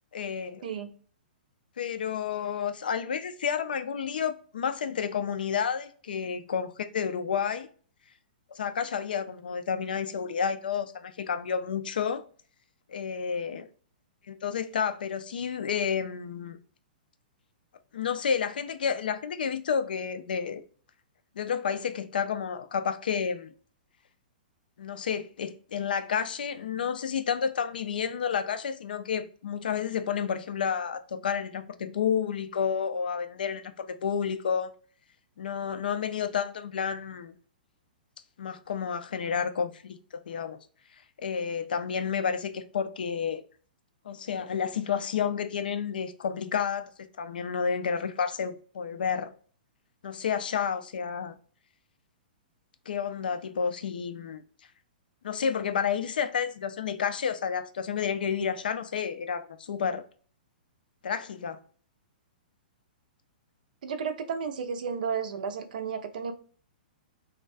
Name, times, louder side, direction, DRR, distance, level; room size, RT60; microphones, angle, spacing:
voice 1, 0.1-0.6 1.8-7.7 8.5-12.2 12.9-13.7 14.3-16.6 17.9-20.6 21.4-23.5 24.8-34.7 35.4-37.3 38.4-40.6 41.2-43.4 44.0-46.9 47.2-49.3 50.0-51.4 52.9-54.4 55.2-60.1 61.0-61.6, left 7 dB, 75° left, 0.3 m, -30 dB
voice 2, 63.8-66.3, right 6 dB, 65° right, 0.4 m, -32 dB
2.3 x 2.2 x 2.4 m
hypercardioid pair, 120°, 5 cm